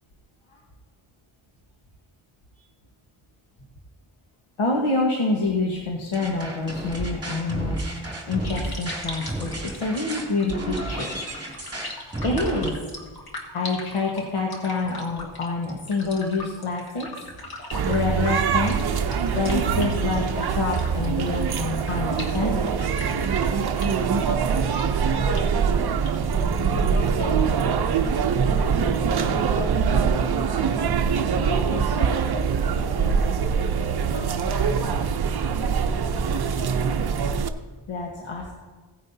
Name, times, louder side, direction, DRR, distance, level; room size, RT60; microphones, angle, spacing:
voice 1, 4.6-11.2 12.2-12.8 13.5-17.1 17.4-17.6 17.9-18.9 19.3-22.8 37.9-38.5, left 3 dB, 85° left, -2 dB, 1.5 m, -27 dB
sound 1, 6.1-12.7, right 1 dB, 10° right, 2.4 m, -32 dB
sound 2, 8.4-27.4, left 2 dB, 50° left, 1.7 m, -41 dB
sound 3, 17.7-37.5, right 6 dB, 50° right, 0.6 m, -23 dB
voice 2, 24.2-24.7 25.1-25.6 26.3-27.8 28.5-30.0 31.2-34.9 35.5-37.1, left 2 dB, 65° left, -5 dB, 3.2 m, -38 dB
16.5 x 9.4 x 2.8 m, 1.4 s
wide cardioid pair, 175°, 49 cm